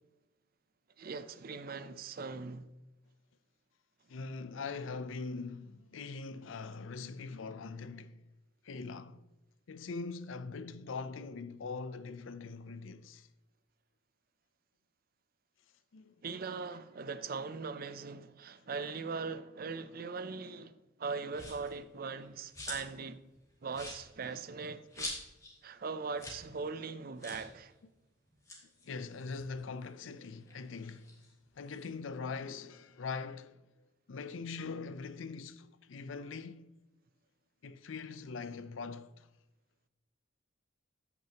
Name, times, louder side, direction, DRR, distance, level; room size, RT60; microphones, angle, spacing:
voice 1, 1.0-2.7 16.2-23.2 23.6-25.2 25.6-27.7, right 4 dB, 50° right, 0.5 m, -40 dB
voice 2, 4.1-8.2 8.6-9.2 9.7-13.3 15.9-16.1 28.8-31.1 31.6-33.6 34.1-36.8 37.6-39.3, left 4 dB, 80° left, 0.5 m, -42 dB
sound 1, 21.3-21.7 22.2-23.0 23.3-23.4 23.7-25.6 25.8-25.9 26.1-26.5 26.7-26.8 27.2-27.5 28.3-30.0 30.4-31.9, left 2 dB, 15° left, 2.2 m, -45 dB
14.5 x 6.0 x 2.9 m
head